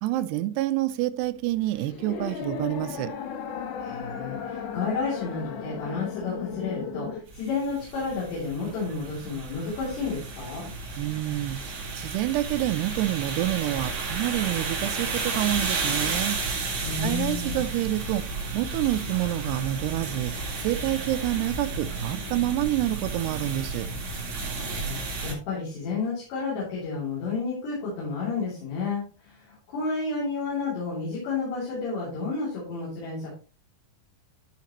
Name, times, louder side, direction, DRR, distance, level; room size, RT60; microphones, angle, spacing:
voice 1, 0.0-3.1 11.0-16.4 17.0-18.2 18.5-20.3 20.6-23.9, right 15 dB, 85° right, 2.4 m, -28 dB
sound 1, 1.2-7.2, left 6 dB, 90° left, 1.7 m, -35 dB
voice 2, 3.8-10.7 16.8-17.6 24.5-33.3, left 4 dB, 65° left, 5.0 m, -31 dB
sound 2, 7.3-25.3, right 3 dB, 45° right, 2.1 m, -32 dB
12.5 x 5.8 x 3.0 m
omnidirectional pair, 5.5 m